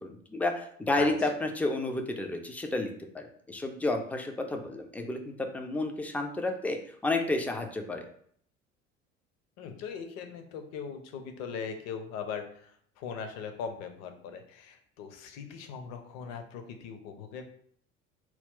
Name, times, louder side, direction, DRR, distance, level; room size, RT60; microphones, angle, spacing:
voice 1, 0.0-6.8 7.0-8.1, left 2 dB, 5° left, 4 dB, 0.3 m, -31 dB
voice 2, 9.6-12.7 13.0-17.4, left 6 dB, 45° left, 6 dB, 0.7 m, -40 dB
4.3 x 2.3 x 3.7 m, 0.63 s
figure-of-eight pair, 65°, 38 cm